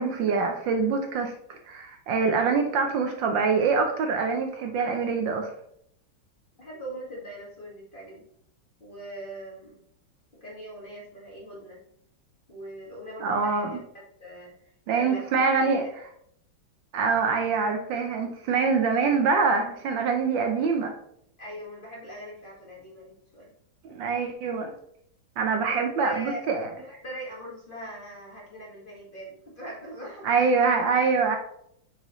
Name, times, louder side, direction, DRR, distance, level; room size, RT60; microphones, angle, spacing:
voice 1, 0.0-5.5 13.2-13.8 14.9-15.8 16.9-20.9 23.8-24.7 25.4-26.7 30.2-31.4, right 5 dB, 70° right, 5 dB, 1.4 m, -25 dB
voice 2, 6.6-8.3 8.8-9.8 10.4-11.8 12.5-13.8 14.2-14.5 14.9-15.9 21.4-23.5 25.7-26.4 26.8-30.7, right 1 dB, 25° left, -4 dB, 1.7 m, -41 dB
6.6 x 5.4 x 3.1 m, 0.70 s
omnidirectional pair, 2.3 m